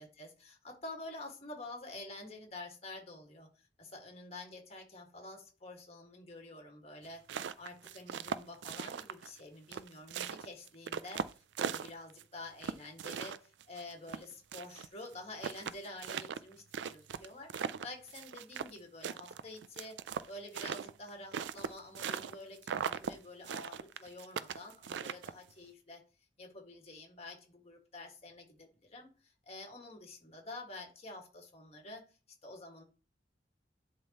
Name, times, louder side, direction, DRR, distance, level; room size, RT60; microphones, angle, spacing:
voice 1, 0.0-20.0 20.3-26.0 26.4-32.1 32.4-32.8, left 2 dB, 35° left, 1.7 m, -49 dB
sound 1, 7.1-9.4 9.7-12.2 12.6-14.9 15.1-15.2 15.4-18.8 19.0-22.4 22.6-23.1 23.5-25.5, right 7 dB, 90° right, 0.4 m, -39 dB
11.0 x 3.7 x 2.9 m
head